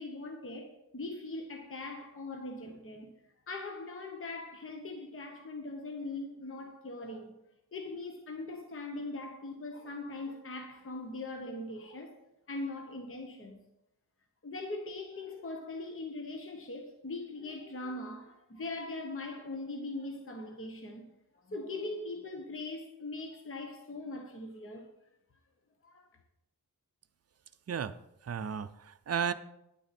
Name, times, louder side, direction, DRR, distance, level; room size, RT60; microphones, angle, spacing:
voice 1, 0.0-3.1 3.5-7.3 7.7-12.2 12.5-13.6 14.4-21.1 21.4-24.9 25.8-26.1, left 2 dB, 35° left, 1.0 m, -41 dB
voice 2, 27.7-28.0 28.2-29.3, right 7 dB, 40° right, 0.5 m, -34 dB
9.8 x 9.1 x 4.2 m
wide cardioid pair, 170°, 38 cm